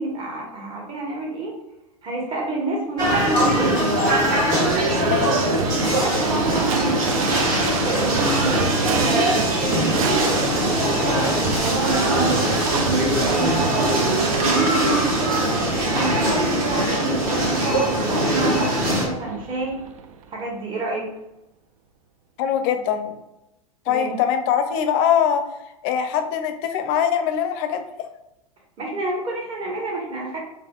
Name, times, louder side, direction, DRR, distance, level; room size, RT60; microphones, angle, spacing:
voice 1, 0.0-1.6 2.0-3.8 5.8-9.3 9.7-14.0 14.4-19.8 20.3-21.1 23.9-24.1 28.8-30.4, right 2 dB, 30° right, -2 dB, 1.1 m, -29 dB
sound 1, 3.0-19.1, right 1 dB, 50° right, 1.3 m, -22 dB
Livestock farm animals working animals / Bell, 4.5-20.3, right 6 dB, 65° right, 0.4 m, -28 dB
voice 2, 5.0-5.4 22.4-23.2 23.9-25.4 25.8-27.8, left 8 dB, 45° left, 8 dB, 0.5 m, -22 dB
3.9 x 2.7 x 2.3 m, 0.91 s
hypercardioid pair, 95°, 19 cm